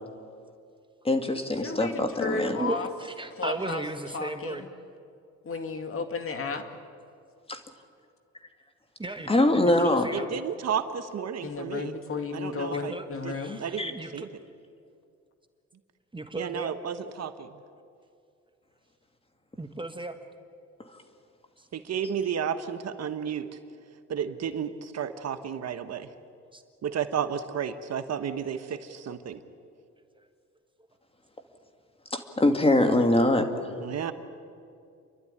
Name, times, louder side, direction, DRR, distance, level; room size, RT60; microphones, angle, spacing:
voice 1, 1.0-2.6 7.5-7.6 9.3-10.1 13.8-13.9 32.1-33.7, left 1 dB, 20° left, 6 dB, 2.2 m, -23 dB
voice 2, 1.6-2.9 3.4-3.8 4.1-4.7 5.4-6.6 11.4-13.6, left 4 dB, 45° left, 5 dB, 2.2 m, -33 dB
voice 3, 2.5-4.7 9.0-9.3 9.6-10.3 12.7-14.3 16.1-16.7 19.6-20.2 21.6-21.7 26.4-26.6 30.1-30.3, right 2 dB, 15° right, 7 dB, 1.4 m, -36 dB
voice 4, 10.1-11.9 12.3-13.0 13.2-13.3 13.6-14.3 16.4-17.5 21.7-23.5 24.1-26.1 26.8-29.4 33.8-34.1, right 8 dB, 60° right, 9 dB, 1.3 m, -32 dB
29.5 x 12.0 x 9.9 m, 2.4 s
cardioid pair, 90°, 30 cm